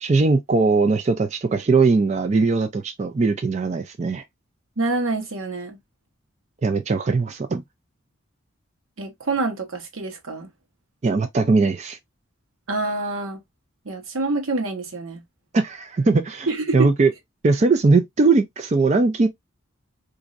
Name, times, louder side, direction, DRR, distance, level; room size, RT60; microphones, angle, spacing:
voice 1, 0.0-4.2 6.6-7.6 11.0-12.0 15.5-16.5 16.7-17.1 17.4-19.3, right 3 dB, 35° right, 0.4 m, -20 dB
voice 2, 4.8-5.8 9.0-10.5 12.7-13.4 13.8-15.2 16.5-16.9, right 3 dB, 85° right, 1.0 m, -26 dB
4.1 x 2.6 x 2.5 m
head